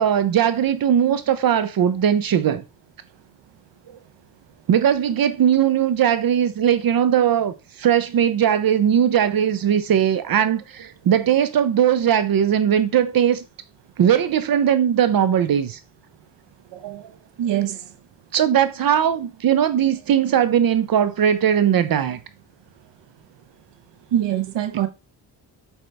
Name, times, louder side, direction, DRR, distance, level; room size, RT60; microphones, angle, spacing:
voice 1, 0.0-2.6 4.7-13.4 14.0-15.8 18.3-22.2, right 9 dB, 55° right, 0.6 m, -19 dB
voice 2, 16.7-17.1 17.4-17.8 24.1-24.9, right 11 dB, 85° right, 0.8 m, -24 dB
7.9 x 4.4 x 3.3 m
cardioid pair, 110°, 42 cm